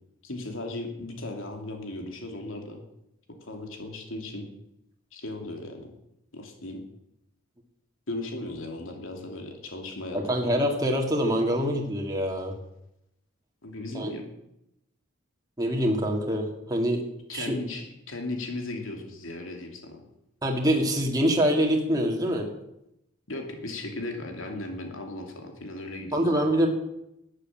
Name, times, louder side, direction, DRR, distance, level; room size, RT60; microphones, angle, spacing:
voice 1, 0.2-2.8 3.4-4.5 5.1-5.9 6.3-6.8 8.1-10.5 13.6-14.2 17.3-20.0 23.3-26.3, left 2 dB, 70° left, 3 dB, 2.8 m, -36 dB
voice 2, 10.1-12.5 13.9-14.1 15.6-17.0 17.3-17.6 20.4-22.5 26.1-26.7, equal, 20° right, 0 dB, 2.2 m, -25 dB
13.0 x 10.0 x 8.8 m, 0.82 s
head